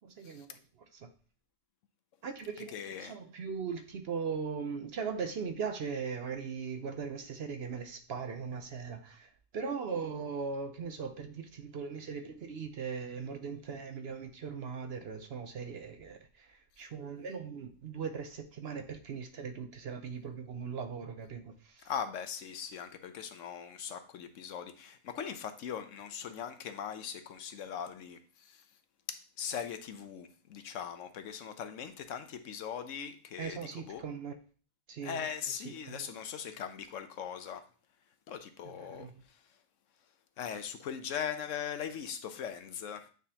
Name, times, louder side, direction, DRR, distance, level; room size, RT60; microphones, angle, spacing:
voice 1, 0.0-0.6 0.9-1.1 2.2-21.9 33.4-34.3 34.9-35.3 35.5-36.1 38.8-39.1, right 5 dB, 60° right, 0.8 m, -39 dB
voice 2, 2.7-3.1 21.8-28.6 29.1-34.0 35.0-37.6 38.3-39.4 40.4-43.1, left 8 dB, 70° left, 1.0 m, -40 dB
9.2 x 3.8 x 2.8 m
omnidirectional pair, 1.4 m